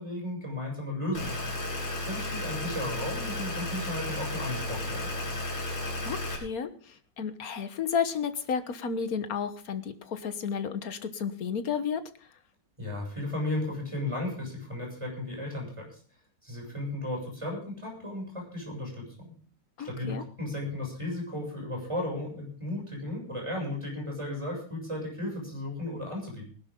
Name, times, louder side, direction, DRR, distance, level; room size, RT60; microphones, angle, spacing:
voice 1, 0.0-1.5 2.0-5.3 12.8-16.0 16.4-19.3 19.8-26.5, left 1 dB, 15° right, -1 dB, 6.9 m, -35 dB
sound 1, 1.1-6.4, left 2 dB, 85° left, 4.3 m, -33 dB
voice 2, 6.0-12.0 19.8-20.2, left 6 dB, 55° left, 10 dB, 1.6 m, -32 dB
19.5 x 12.0 x 3.8 m, 0.41 s
omnidirectional pair, 2.0 m